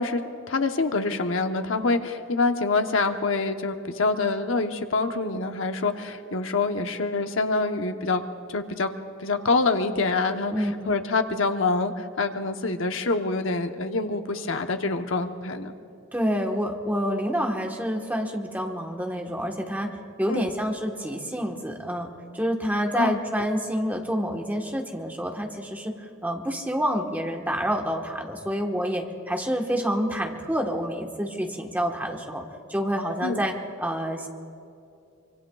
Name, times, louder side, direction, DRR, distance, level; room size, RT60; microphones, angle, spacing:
voice 1, 0.0-8.9 9.2-15.7 20.3-20.5 22.9-23.2 33.2-33.4, left 3 dB, 70° left, 6 dB, 0.9 m, -26 dB
voice 2, 10.5-10.9 16.1-19.9 20.2-32.4 32.7-33.5 33.8-34.3, equal, 10° right, 2 dB, 1.2 m, -28 dB
24.5 x 24.5 x 2.3 m, 2.6 s
head